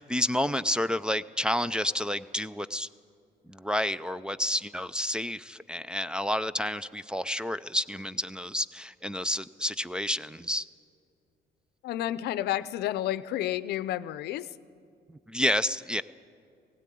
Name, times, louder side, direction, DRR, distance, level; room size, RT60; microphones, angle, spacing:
voice 1, 0.0-2.9 3.5-10.7 15.1-16.0, left 1 dB, 5° right, 9 dB, 0.4 m, -30 dB
voice 2, 11.8-14.5, left 13 dB, 75° left, 16 dB, 0.6 m, -31 dB
17.0 x 16.5 x 9.3 m, 2.4 s
cardioid pair, 110°, 17 cm